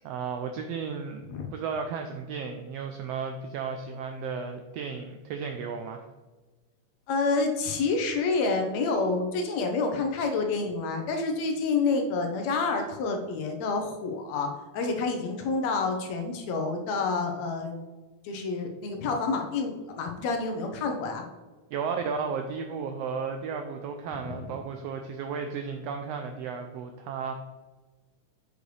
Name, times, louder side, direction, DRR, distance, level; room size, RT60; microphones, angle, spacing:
voice 1, 0.0-1.2 1.5-6.1 21.7-27.3, right 5 dB, 85° right, 6 dB, 1.4 m, -34 dB
voice 2, 7.1-17.7 18.2-21.2 24.3-24.5, left 4 dB, 70° left, 4 dB, 2.0 m, -28 dB
6.7 x 6.4 x 3.2 m, 1.2 s
omnidirectional pair, 3.4 m